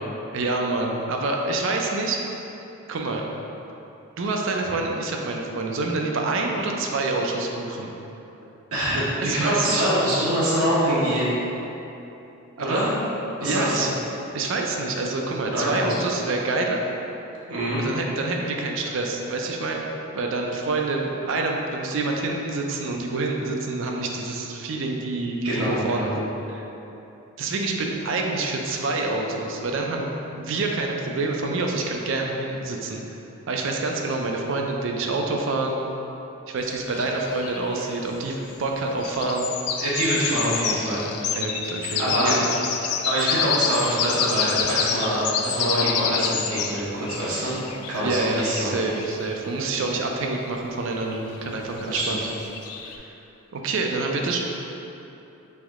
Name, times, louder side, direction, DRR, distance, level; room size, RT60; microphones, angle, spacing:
voice 1, 0.3-2.2 2.9-3.2 4.2-7.9 9.2-9.8 12.6-12.8 13.4-13.9 14.3-16.8 17.8-19.8 20.1-26.7 27.4-30.1 30.4-33.0 33.5-35.8 36.5-39.5 41.3-42.5 48.0-52.2 53.5-54.4, right 3 dB, 60° right, 1 dB, 0.4 m, -27 dB
voice 2, 8.7-11.2 12.6-12.9 13.4-13.9 15.5-15.9 17.5-17.8 25.4-26.1 39.7-41.4 41.8-42.3 43.0-47.6 47.9-48.8 51.9-52.2 52.8-53.1, equal, 80° right, -8 dB, 0.9 m, -25 dB
sound 1, 36.6-37.9 39.0-49.8 51.8-53.0, left 7 dB, 80° left, 0.3 m, -28 dB
3.4 x 3.1 x 3.5 m, 3.0 s
head